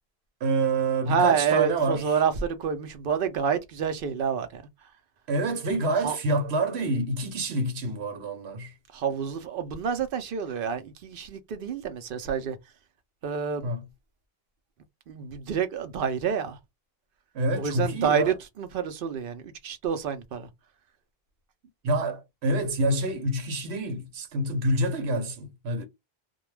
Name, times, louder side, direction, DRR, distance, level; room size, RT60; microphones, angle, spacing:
voice 1, 0.4-2.1 5.3-8.7 13.6-13.8 17.3-18.3 21.8-25.9, right 2 dB, 90° right, 1.0 m, -27 dB
voice 2, 1.1-4.6 6.0-6.2 8.9-12.6 13.2-13.7 15.1-16.6 17.6-20.5, right 7 dB, 65° right, 0.7 m, -28 dB
2.2 x 2.2 x 3.1 m
omnidirectional pair, 1.0 m